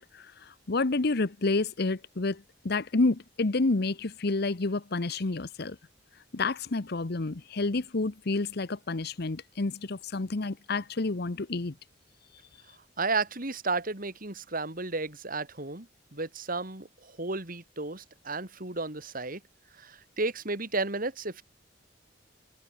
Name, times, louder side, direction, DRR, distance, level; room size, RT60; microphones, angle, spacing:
voice 1, 0.0-5.8 6.3-11.7, left 3 dB, 60° left, 0.9 m, -29 dB
voice 2, 13.0-19.4 19.8-21.4, right 3 dB, 50° right, 3.4 m, -33 dB
head